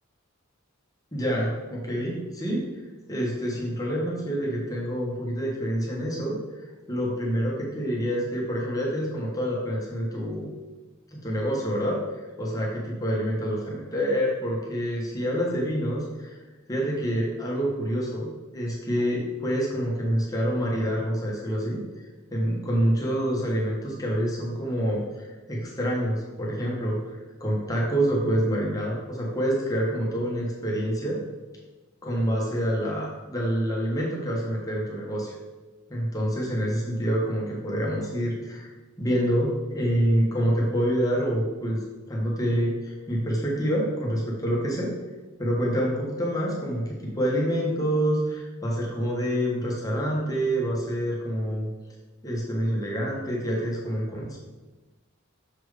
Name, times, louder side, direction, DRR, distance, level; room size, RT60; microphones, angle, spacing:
voice 1, 1.1-2.7 3.1-10.5 11.1-16.4 16.7-21.8 22.3-31.2 32.0-35.4 35.9-38.7 39.0-41.8 42.1-44.9 45.4-51.7 52.2-54.4, equal, 15° left, -3 dB, 1.4 m, -27 dB
6.7 x 4.5 x 4.9 m, 1.2 s
head